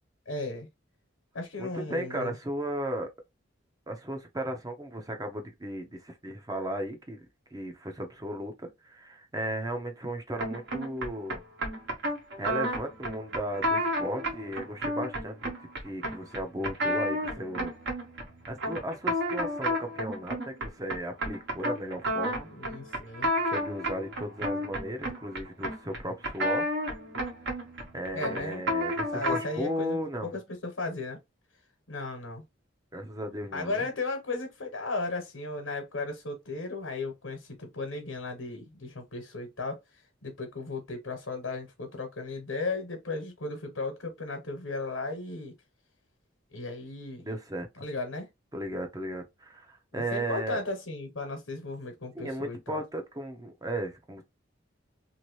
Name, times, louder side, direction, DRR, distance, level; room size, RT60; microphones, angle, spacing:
voice 1, 0.3-0.7 1.3-2.3 22.4-23.3 28.1-28.6 29.1-31.2 31.9-32.4 33.5-45.5 46.5-47.2 47.8-48.3 49.9-52.8, left 3 dB, 90° left, 1.0 m, -35 dB
voice 2, 1.6-3.1 3.9-7.3 7.5-11.4 12.4-15.5 15.8-17.7 18.5-22.5 23.5-26.7 27.9-30.3 32.9-33.9 47.2-47.7 48.5-50.6 52.1-54.2, right 1 dB, 20° right, 0.6 m, -35 dB
sound 1, 10.4-29.6, equal, 60° right, 1.1 m, -32 dB
2.8 x 2.6 x 3.1 m
head